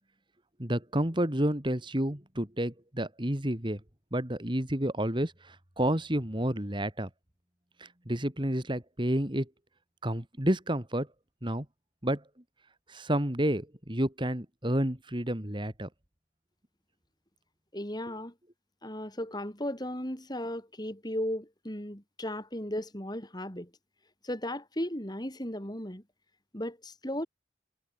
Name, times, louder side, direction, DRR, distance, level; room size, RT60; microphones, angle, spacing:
voice 1, 0.6-3.8 4.1-7.1 7.8-9.5 10.0-11.1 11.4-11.6 12.0-12.2 12.9-15.9, right 1 dB, 25° right, 2.9 m, -30 dB
voice 2, 17.7-18.3 18.8-23.7 24.2-26.0 26.5-27.3, left 1 dB, 20° left, 6.1 m, -36 dB
head